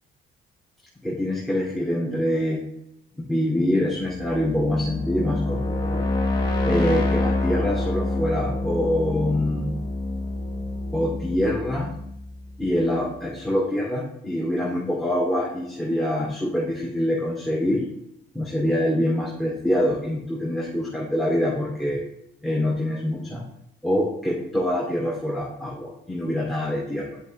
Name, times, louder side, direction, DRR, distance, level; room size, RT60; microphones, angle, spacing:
voice 1, 1.0-2.6 3.2-6.0 6.6-9.7 10.9-11.9 12.6-17.8 18.3-22.0 22.4-23.4 23.8-27.2, left 1 dB, ahead, -5 dB, 2.3 m, -25 dB
sound 1, 4.0-12.9, left 2 dB, 25° left, 2.3 m, -27 dB
9.4 x 7.8 x 3.1 m, 0.79 s
cardioid pair, 90°, 20 cm